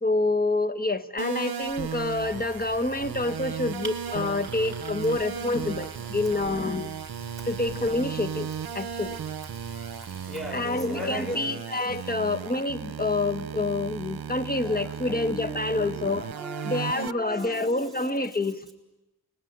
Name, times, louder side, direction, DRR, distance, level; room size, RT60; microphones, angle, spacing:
voice 1, 0.0-6.9 7.5-9.2 10.5-16.3 16.6-18.7, left 2 dB, 25° left, 10 dB, 1.5 m, -27 dB
sound 1, 1.2-17.1, right 8 dB, 70° right, 1.0 m, -36 dB
sound 2, 1.6-10.4, right 4 dB, 30° right, 3.4 m, -44 dB
Sink (filling or washing), 5.0-12.1, left 1 dB, 45° left, 5.0 m, -55 dB
voice 2, 10.2-11.4 14.6-18.1, right 1 dB, ahead, 3 dB, 7.1 m, -39 dB
29.5 x 20.0 x 9.6 m, 1.0 s
cardioid pair, 75°, 38 cm